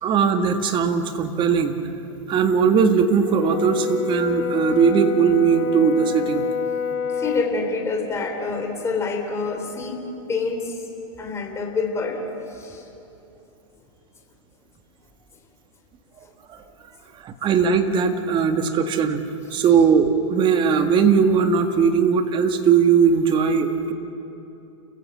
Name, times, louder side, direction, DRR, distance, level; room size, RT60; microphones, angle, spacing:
voice 1, 0.0-1.8 2.3-6.5 16.5-16.6 17.2-19.2 19.5-23.9, right 6 dB, 30° right, 7 dB, 1.9 m, -19 dB
Brass instrument, 3.3-7.5, left 5 dB, 55° left, 2.2 m, -27 dB
voice 2, 7.2-10.0 10.3-10.7 11.2-12.2 12.6-12.8, left 4 dB, 15° left, 2 dB, 3.5 m, -26 dB
29.5 x 15.0 x 7.9 m, 2.9 s
hypercardioid pair, 115°, 17 cm